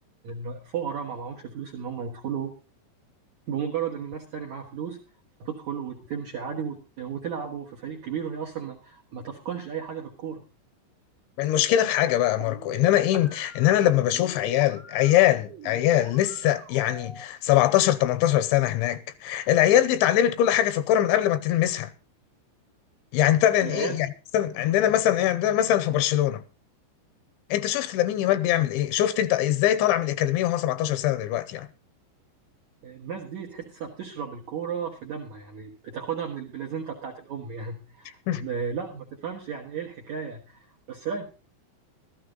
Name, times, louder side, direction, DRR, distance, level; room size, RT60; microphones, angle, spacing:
voice 1, 0.2-2.5 3.5-5.0 5.4-10.4 23.6-24.0 32.8-41.2, right 7 dB, 65° right, 1.8 m, -34 dB
voice 2, 11.4-21.9 23.1-24.1 24.3-26.4 27.5-31.7 38.3-38.4, left 12 dB, 80° left, 3.1 m, -22 dB
sound 1, 12.2-17.2, right 5 dB, 50° right, 1.0 m, -45 dB
14.0 x 13.5 x 3.9 m
omnidirectional pair, 5.4 m